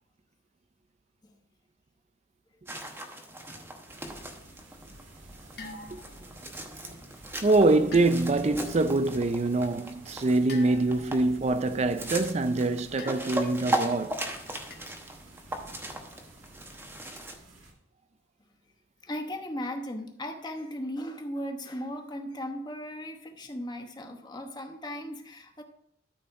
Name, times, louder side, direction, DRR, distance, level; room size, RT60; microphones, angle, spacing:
sound 1, 2.7-17.4, right 1 dB, 10° right, 1.0 m, -38 dB
sound 2, 3.8-17.7, right 1 dB, 85° right, 2.2 m, -51 dB
sound 3, 5.6-6.3 7.9-8.5 10.5-11.2 13.0-13.6 14.7-15.0, left 3 dB, 55° left, 1.1 m, -44 dB
voice 1, 7.4-14.2, right 2 dB, 35° right, 0.4 m, -24 dB
voice 2, 19.0-25.6, equal, 20° left, 1.0 m, -37 dB
13.0 x 4.4 x 4.6 m
head